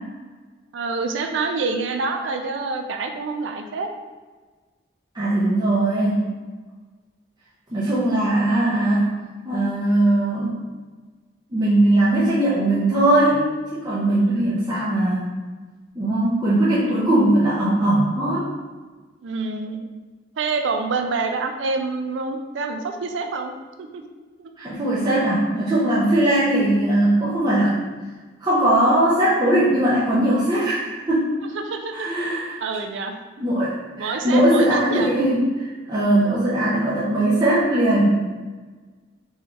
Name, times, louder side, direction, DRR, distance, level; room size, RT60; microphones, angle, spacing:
voice 1, 0.7-3.9 14.2-14.5 16.7-17.2 19.2-19.8 20.4-23.5 23.8-24.0 24.4-24.5 31.4-33.2 34.0-35.1 36.1-36.5, right 4 dB, 75° right, 5 dB, 0.4 m, -27 dB
voice 2, 5.1-6.3 7.7-9.1 9.4-10.5 11.5-15.3 15.9-18.5 24.6-27.7 28.4-31.3 31.9-32.6 33.4-38.4, right 1 dB, 25° right, -9 dB, 0.6 m, -20 dB
3.9 x 3.3 x 2.4 m, 1.4 s
head